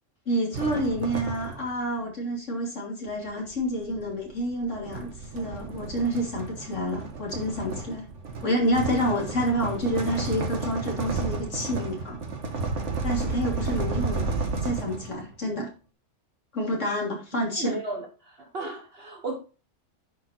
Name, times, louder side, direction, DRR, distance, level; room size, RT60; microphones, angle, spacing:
voice 1, 0.3-8.1 8.4-12.2 13.0-15.7 16.5-17.8, equal, 75° left, 3.4 m, -28 dB
sound 1, 0.5-1.8 3.1-15.3, right 4 dB, 70° right, 1.7 m, -32 dB
voice 2, 17.6-19.4, right 3 dB, 50° right, 1.5 m, -34 dB
9.8 x 4.9 x 4.4 m
omnidirectional pair, 1.3 m